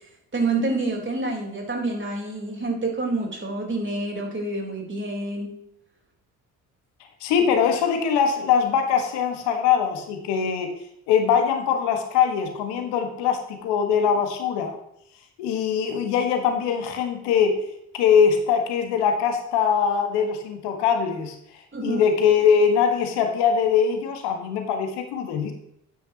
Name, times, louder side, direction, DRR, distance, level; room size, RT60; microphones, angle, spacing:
voice 1, 0.3-5.5 21.7-22.0, right 2 dB, 25° right, 1 dB, 4.1 m, -27 dB
voice 2, 7.2-10.7 11.1-14.8 15.4-17.6 17.9-21.3 21.8-25.5, left 7 dB, 70° left, 5 dB, 1.7 m, -22 dB
11.5 x 9.6 x 3.0 m, 0.76 s
hypercardioid pair, 50°, 43 cm